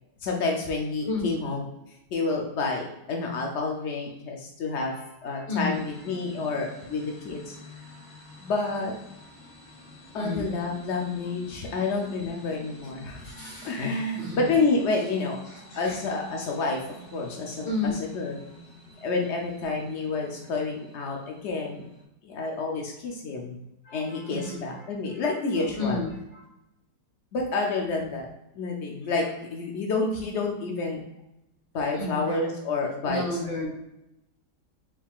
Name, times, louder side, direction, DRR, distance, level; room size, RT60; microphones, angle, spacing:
voice 1, 0.2-1.6 2.1-4.9 5.2-7.5 8.4-8.9 10.1-13.3 13.6-16.8 17.1-18.4 19.0-21.9 22.2-23.6 23.9-26.0 27.3-28.3 28.6-31.0 31.7-33.4, left 3 dB, 80° left, 0 dB, 0.6 m, -29 dB
voice 2, 1.0-1.4 4.7-5.8 10.1-10.5 13.2-14.5 15.5-16.0 17.6-18.0 23.8-24.8 25.8-26.4 31.9-32.4 33.0-33.7, left 2 dB, 60° left, -10 dB, 1.9 m, -33 dB
sound 1, 5.7-22.0, left 1 dB, 5° left, 0.5 m, -49 dB
4.6 x 3.6 x 2.4 m, 0.88 s
omnidirectional pair, 1.9 m